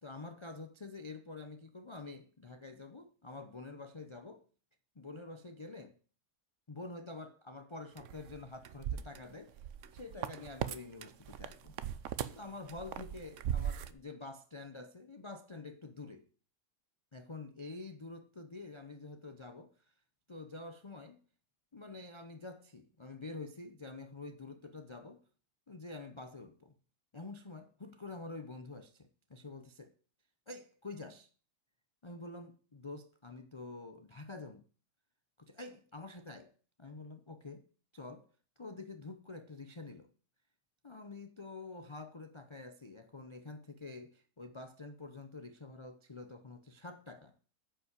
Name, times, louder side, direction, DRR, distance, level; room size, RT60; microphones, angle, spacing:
voice 1, 0.0-4.4 5.0-6.0 6.7-9.6 9.9-11.8 12.2-16.3 17.1-19.9 20.3-21.2 21.7-25.2 25.7-26.7 27.1-29.9 30.5-31.3 32.0-34.6 35.4-36.5 36.8-37.7 37.9-38.3 38.6-40.1 40.8-47.4, left 3 dB, 40° left, 0.4 m, -47 dB
sound 1, 8.0-10.8 11.0-13.9, right 9 dB, 60° right, 0.9 m, -39 dB
9.5 x 5.5 x 8.1 m
omnidirectional pair, 1.8 m